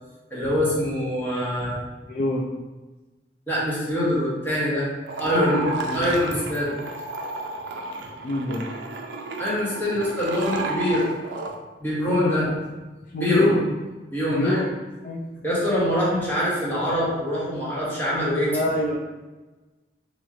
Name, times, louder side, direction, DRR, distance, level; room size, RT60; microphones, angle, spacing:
voice 1, 0.3-1.8 3.5-4.9 5.2-5.7 5.9-6.7 9.4-11.1 11.8-12.5 13.2-13.5 14.1-14.6 15.4-18.5, equal, 10° left, -9 dB, 1.4 m, -24 dB
voice 2, 2.1-2.5 5.2-6.1 8.2-8.7 12.1-12.5 13.1-13.7 14.3-14.7 15.0-15.2 18.5-18.9, left 1 dB, 50° left, -2 dB, 0.4 m, -25 dB
sound 1, 5.0-11.6, right 2 dB, 80° right, 0.5 m, -32 dB
3.1 x 3.1 x 3.7 m, 1.2 s
head